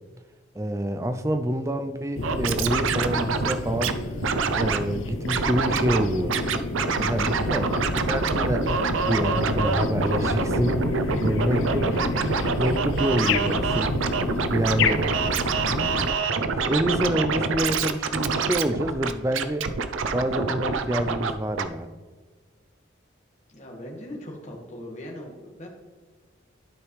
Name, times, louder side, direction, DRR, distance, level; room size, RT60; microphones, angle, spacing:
voice 1, 0.6-3.9 4.5-6.5 7.0-7.7 8.1-8.6 9.1-11.9 12.6-14.0 14.5-15.1 16.1-16.3 16.6-19.7 20.1-21.9, right 1 dB, 15° right, 9 dB, 0.4 m, -27 dB
sound 1, 2.1-16.1, left 3 dB, 85° left, 0.6 m, -29 dB
Scratching (performance technique), 2.2-3.9 4.2-4.8 5.3-6.0 6.3-21.3 21.6-21.7, right 4 dB, 85° right, 0.6 m, -26 dB
voice 2, 11.1-11.7 23.5-25.7, left 1 dB, 35° left, -1 dB, 1.7 m, -39 dB
12.0 x 5.0 x 3.2 m, 1.4 s
head